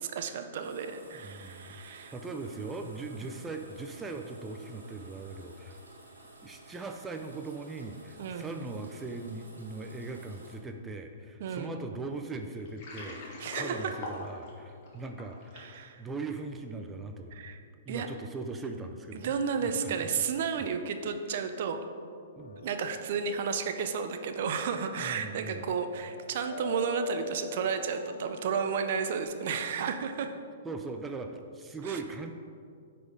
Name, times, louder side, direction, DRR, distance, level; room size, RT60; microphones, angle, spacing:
voice 1, 0.0-2.1 8.2-8.5 11.4-11.7 13.4-13.9 15.6-16.0 17.3-17.6 17.9-18.1 19.2-21.8 22.6-30.3 31.8-32.0, right 6 dB, 55° right, 7 dB, 0.6 m, -32 dB
sound 1, 0.6-10.6, right 2 dB, 90° right, 1.5 m, -53 dB
voice 2, 1.1-5.8 6.4-15.6 16.0-17.4 17.9-19.3 19.6-20.2 22.4-22.7 25.0-25.7 30.6-32.3, right 3 dB, 15° right, 5 dB, 0.5 m, -40 dB
Water, 12.6-15.8, left 2 dB, 45° left, 1.9 m, -41 dB
sound 2, 22.4-29.2, left 6 dB, 75° left, 0.5 m, -45 dB
9.5 x 4.3 x 4.9 m, 2.3 s
hypercardioid pair, 120°, 0 cm